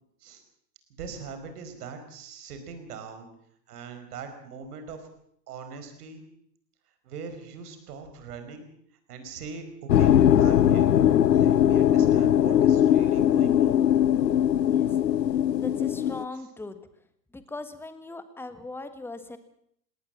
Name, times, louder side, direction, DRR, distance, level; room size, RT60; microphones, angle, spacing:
voice 1, 0.9-3.3 3.7-5.1 5.5-6.2 7.0-8.7 9.1-10.9 11.3-13.8 16.3-16.4, right 5 dB, 65° right, 8 dB, 4.8 m, -41 dB
sound 1, 9.9-16.2, left 10 dB, 80° left, 1.0 m, -20 dB
voice 2, 15.6-16.8 17.3-19.4, left 2 dB, 5° left, 10 dB, 1.6 m, -39 dB
19.0 x 18.5 x 7.4 m, 0.68 s
hypercardioid pair, 110°, 50 cm